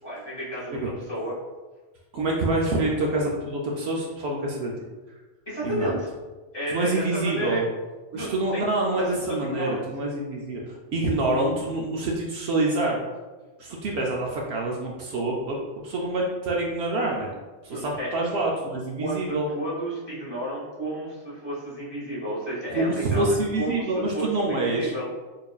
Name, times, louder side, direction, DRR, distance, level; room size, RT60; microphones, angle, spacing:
voice 1, 0.0-1.3 5.4-6.1 6.5-7.7 8.1-9.8 17.7-18.1 19.0-25.1, right 1 dB, 20° left, -9 dB, 1.1 m, -32 dB
voice 2, 2.1-4.7 5.6-5.9 6.7-7.7 8.1-13.0 13.6-17.3 17.6-19.5 22.7-24.9, right 2 dB, 65° right, -1 dB, 0.8 m, -26 dB
4.6 x 2.5 x 2.3 m, 1.2 s
omnidirectional pair, 1.2 m